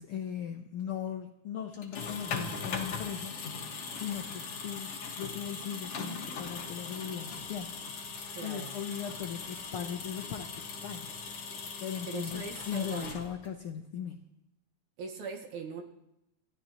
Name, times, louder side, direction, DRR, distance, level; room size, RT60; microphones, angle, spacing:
voice 1, 0.0-3.4 3.9-8.1 8.4-11.1 11.4-14.2, left 9 dB, 80° left, 5 dB, 1.2 m, -39 dB
sound 1, 1.7-13.6, left 5 dB, 55° left, 2.4 m, -40 dB
voice 2, 8.3-8.7 12.1-13.2 15.0-15.8, right 5 dB, 75° right, 3 dB, 2.9 m, -40 dB
27.5 x 12.5 x 3.0 m, 0.89 s
omnidirectional pair, 3.5 m